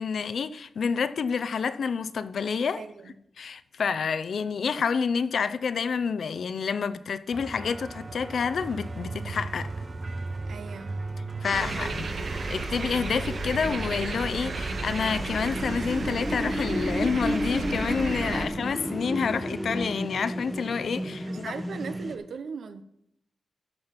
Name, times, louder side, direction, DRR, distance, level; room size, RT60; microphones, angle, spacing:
voice 1, 0.0-2.8 3.4-9.7 11.4-12.1 12.5-21.6, left 6 dB, 75° left, 0.5 m, -28 dB
voice 2, 2.8-3.2 10.5-10.9 11.5-12.3 18.4-18.5 21.3-22.8, right 5 dB, 80° right, 0.7 m, -39 dB
sound 1, 7.3-19.9, right 3 dB, 35° right, 0.6 m, -39 dB
sound 2, 11.4-22.2, equal, 5° right, 0.9 m, -34 dB
sound 3, 11.5-18.4, right 3 dB, 55° right, 1.2 m, -34 dB
13.0 x 5.1 x 5.7 m
wide cardioid pair, 130°, 0 cm